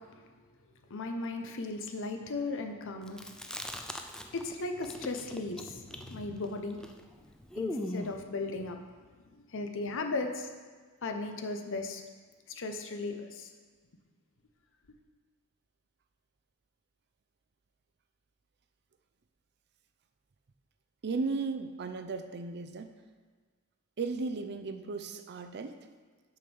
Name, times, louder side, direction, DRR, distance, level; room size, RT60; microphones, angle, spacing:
voice 1, 0.9-3.2 4.3-6.8 7.6-8.8 9.5-10.5 11.0-12.0 12.5-13.5, left 3 dB, 60° left, 5 dB, 0.8 m, -36 dB
Chewing mastication, 3.1-4.5 4.8-8.2, left 1 dB, 5° left, 0.4 m, -39 dB
voice 2, 21.0-22.9 24.0-25.8, right 4 dB, 50° right, 8 dB, 0.5 m, -35 dB
6.3 x 6.1 x 5.4 m, 1.5 s
head